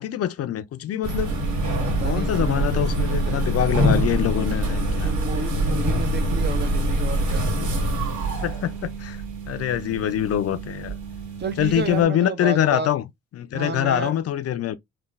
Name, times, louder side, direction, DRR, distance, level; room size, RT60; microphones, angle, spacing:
voice 1, 0.0-1.3 2.0-5.1 8.4-11.0 11.6-13.0 13.3-14.8, left 11 dB, 55° left, 0.4 m, -24 dB
sound 1, 1.0-12.0, right 1 dB, 75° right, 1.8 m, -25 dB
voice 2, 1.8-2.8 3.1-3.4 5.0-7.4 11.4-12.9 13.5-14.1, right 5 dB, 35° right, 0.6 m, -32 dB
3.8 x 2.3 x 2.5 m
cardioid pair, 90°, 30 cm